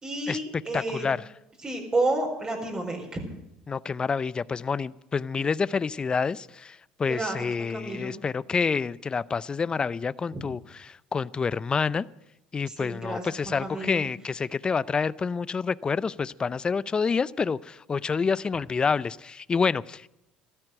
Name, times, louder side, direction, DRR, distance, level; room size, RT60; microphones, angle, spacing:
voice 1, 0.0-1.1 1.6-3.2 7.1-8.1 12.8-14.1, right 2 dB, 25° right, 0 dB, 4.8 m, -30 dB
voice 2, 0.7-1.2 3.7-12.0 12.5-20.1, left 5 dB, 25° left, 20 dB, 0.5 m, -28 dB
13.5 x 13.5 x 7.9 m, 0.87 s
supercardioid pair, 80°, 3 cm